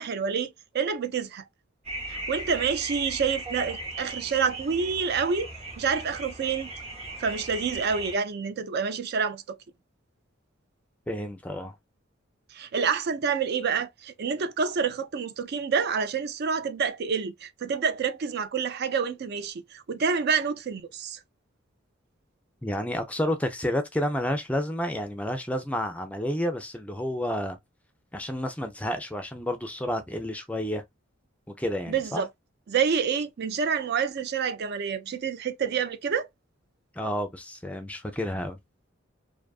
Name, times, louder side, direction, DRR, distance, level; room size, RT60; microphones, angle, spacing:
voice 1, 0.0-1.4 2.1-5.5 5.8-6.7 7.2-9.6 12.5-21.2 31.9-32.3 32.7-36.3, right 6 dB, 55° right, 0.4 m, -28 dB
sound 1, 1.8-8.2, right 1 dB, 30° right, 1.0 m, -38 dB
voice 2, 11.1-11.7 22.6-27.6 28.1-30.8 31.6-32.3 37.0-38.6, equal, 5° left, 0.4 m, -30 dB
2.6 x 2.4 x 2.3 m
head